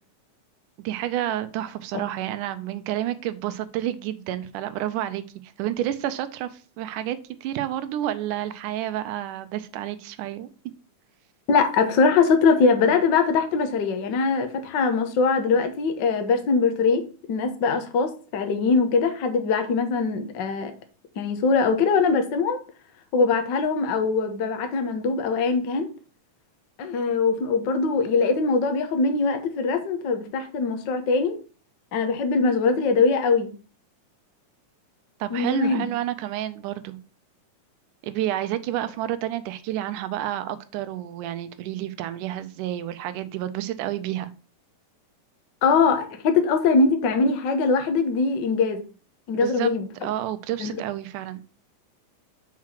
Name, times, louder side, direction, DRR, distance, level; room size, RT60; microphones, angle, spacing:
voice 1, 0.8-10.5 35.2-37.0 38.0-44.3 49.3-49.7 50.0-51.4, right 12 dB, 80° right, 2.1 m, -30 dB
voice 2, 11.5-17.0 17.3-20.7 21.2-22.6 23.1-25.9 26.8-31.3 31.9-33.5 35.3-35.9 45.6-48.8 49.3-49.9 50.6-50.7, left 4 dB, 80° left, 1.0 m, -22 dB
6.0 x 4.8 x 5.8 m
omnidirectional pair, 3.7 m